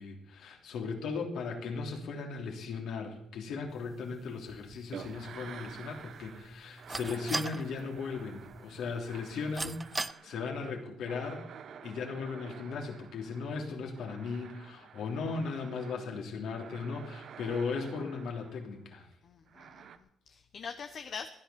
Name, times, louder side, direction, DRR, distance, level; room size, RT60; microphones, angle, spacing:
voice 1, 0.0-11.4 11.8-19.1, left 4 dB, 75° left, 2 dB, 3.2 m, -37 dB
sound 1, 3.7-10.1, right 2 dB, 20° right, 0.5 m, -42 dB
sound 2, 4.9-6.5 6.8-16.1 16.4-18.8 19.5-20.0, right 7 dB, 65° right, 1.0 m, -50 dB
voice 2, 19.2-21.3, left 5 dB, 55° left, 8 dB, 1.0 m, -44 dB
15.5 x 10.5 x 7.0 m, 0.75 s
cardioid pair, 90°, 0 cm